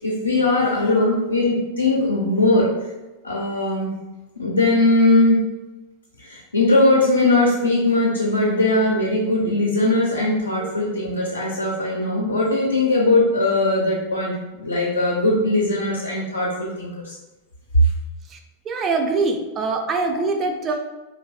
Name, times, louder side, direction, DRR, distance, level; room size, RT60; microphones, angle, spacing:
voice 1, 0.0-2.7 3.2-3.9 4.4-5.4 6.2-17.2 17.7-17.9, left 2 dB, 80° left, -3 dB, 0.4 m, -20 dB
voice 2, 18.7-20.7, right 3 dB, 25° right, 4 dB, 0.3 m, -23 dB
2.5 x 2.1 x 2.3 m, 1.1 s
figure-of-eight pair, 90°, 0 cm